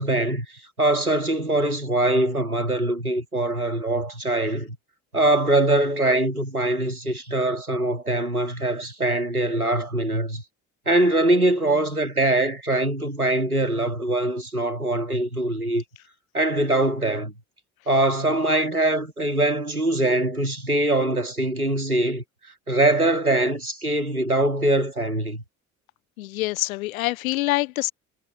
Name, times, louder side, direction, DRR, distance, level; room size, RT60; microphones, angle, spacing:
voice 1, 0.0-4.8 5.1-10.4 10.9-15.8 16.3-17.3 17.9-22.2 22.7-25.4, right 1 dB, 90° right, 2.7 m, -23 dB
voice 2, 26.2-27.9, left 18 dB, 70° left, 1.0 m, -25 dB
figure-of-eight pair, 50°, 43 cm